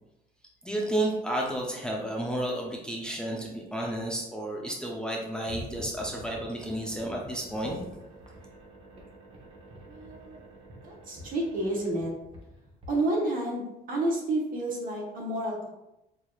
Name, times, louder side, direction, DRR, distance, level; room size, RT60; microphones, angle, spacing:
voice 1, 0.6-7.8, right 1 dB, 5° left, -2 dB, 0.6 m, -32 dB
sound 1, 5.4-12.9, equal, 35° right, 1.1 m, -47 dB
voice 2, 9.8-10.4 10.8-12.1 12.9-15.7, right 1 dB, 55° right, -1 dB, 1.2 m, -30 dB
4.8 x 2.8 x 2.4 m, 0.90 s
cardioid pair, 110°, 17 cm